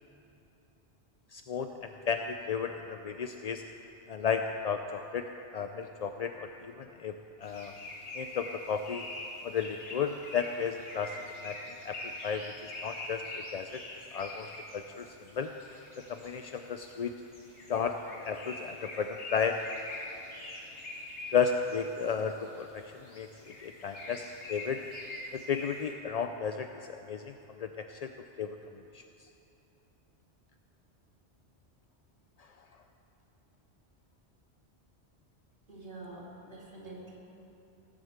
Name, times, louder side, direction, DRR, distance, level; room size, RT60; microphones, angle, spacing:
voice 1, 1.3-3.6 4.1-5.3 5.5-7.7 8.1-9.1 9.4-11.6 11.8-13.8 14.1-15.1 15.3-15.5 16.1-17.2 17.7-19.6 21.3-23.3 23.6-24.2 24.5-24.8 25.3-27.3 27.6-28.1 28.4-28.6 28.9-29.0, left 6 dB, 55° left, 6 dB, 0.4 m, -33 dB
sound 1, 7.4-25.9, left 1 dB, 85° left, 2.3 m, -44 dB
voice 2, 35.7-37.2, right 2 dB, 50° right, -5 dB, 2.9 m, -46 dB
17.5 x 7.5 x 8.0 m, 3.0 s
omnidirectional pair, 1.1 m